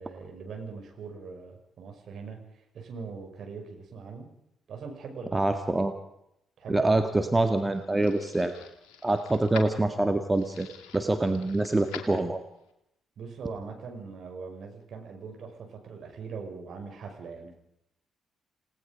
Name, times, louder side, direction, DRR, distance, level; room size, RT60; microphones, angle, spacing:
voice 1, 0.0-2.4 2.7-4.3 4.7-5.5 6.6-7.0 13.2-17.5, right 5 dB, 50° right, 2 dB, 5.3 m, -41 dB
voice 2, 5.3-5.9 6.7-8.6 9.0-10.7 10.9-12.4, right 2 dB, 15° right, 7 dB, 1.8 m, -25 dB
sound 1, 6.8-12.7, left 7 dB, 65° left, 2.5 m, -47 dB
28.5 x 18.0 x 5.2 m, 0.78 s
figure-of-eight pair, 40°, 0 cm